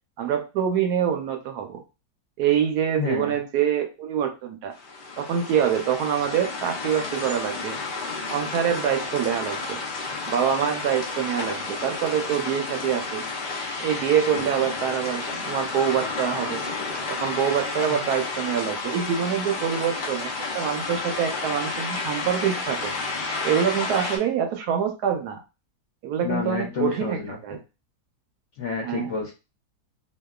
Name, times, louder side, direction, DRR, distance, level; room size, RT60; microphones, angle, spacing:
voice 1, 0.2-1.8 2.4-4.7 5.2-7.8 8.3-9.8 10.3-13.2 13.8-16.6 17.1-23.0 23.4-25.4 26.0-27.6 28.8-29.1, right 8 dB, 75° right, 4 dB, 1.1 m, -25 dB
voice 2, 3.0-3.4 17.9-18.0 26.2-27.4 28.6-29.3, left 5 dB, 60° left, -1 dB, 0.8 m, -29 dB
sound 1, 4.7-24.2, left 3 dB, 85° left, 0.4 m, -31 dB
2.8 x 2.2 x 2.3 m, 0.29 s
omnidirectional pair, 1.7 m